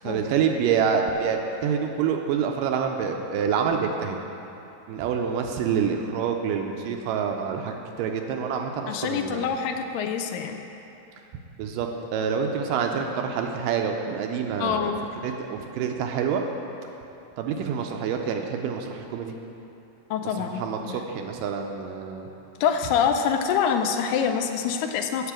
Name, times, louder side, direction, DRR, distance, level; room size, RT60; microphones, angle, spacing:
voice 1, 0.0-4.2 4.9-9.5 11.6-14.9 15.2-16.4 17.4-19.4 20.2-22.3, right 7 dB, 80° right, 3 dB, 2.1 m, -27 dB
voice 2, 8.9-10.6 14.6-15.0 20.1-21.0 22.6-25.3, left 7 dB, 80° left, 5 dB, 2.2 m, -25 dB
8.1 x 5.7 x 7.3 m, 2.9 s
omnidirectional pair, 4.0 m